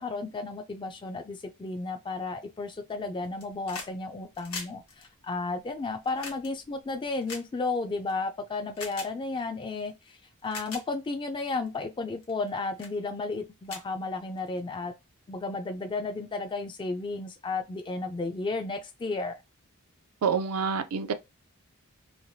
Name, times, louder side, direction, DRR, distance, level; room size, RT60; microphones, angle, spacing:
voice 1, 0.0-14.9 15.3-19.4, left 3 dB, 20° left, 0.3 m, -33 dB
sound 1, 3.2-3.9 4.2-8.1 8.7-9.1 9.9-10.0 10.4-10.8 11.4-11.7 12.2-12.5 12.8-13.0 13.3-13.4 13.6-14.6 15.7-15.8, left 4 dB, 80° left, 1.2 m, -42 dB
voice 2, 20.2-21.1, right 6 dB, 85° right, 0.5 m, -27 dB
3.2 x 2.3 x 2.6 m
head